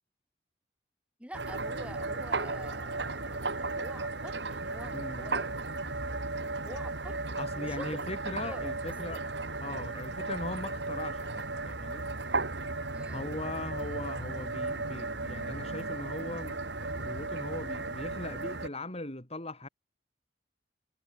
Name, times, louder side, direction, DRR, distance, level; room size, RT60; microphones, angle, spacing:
voice 1, 1.2-5.5 6.6-7.2 7.5-8.0 8.3-8.7 9.1-9.2 12.9-13.3, right 1 dB, 5° right, 6.7 m, -47 dB
sound 1, 1.3-18.7, right 3 dB, 65° right, 2.7 m, -35 dB
voice 2, 4.9-5.3 7.4-9.2 9.6-12.1 13.1-19.7, left 2 dB, 35° left, 5.0 m, -40 dB
head